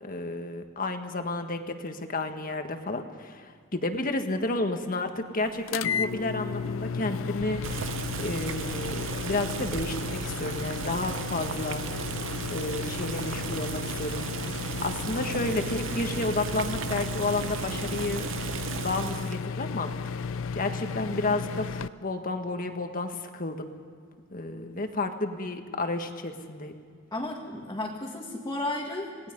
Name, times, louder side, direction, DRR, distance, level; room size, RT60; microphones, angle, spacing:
voice 1, 0.0-11.9 12.5-14.5 14.8-18.3 18.8-23.7 24.3-26.7, left 2 dB, 45° left, 6 dB, 1.7 m, -31 dB
sound 1, 5.7-21.9, left 5 dB, 80° left, 0.5 m, -34 dB
Boiling, 7.6-19.4, right 5 dB, 70° right, 0.7 m, -35 dB
voice 2, 27.1-29.3, left 2 dB, 20° left, -3 dB, 2.0 m, -33 dB
27.5 x 19.0 x 5.4 m, 2.1 s
head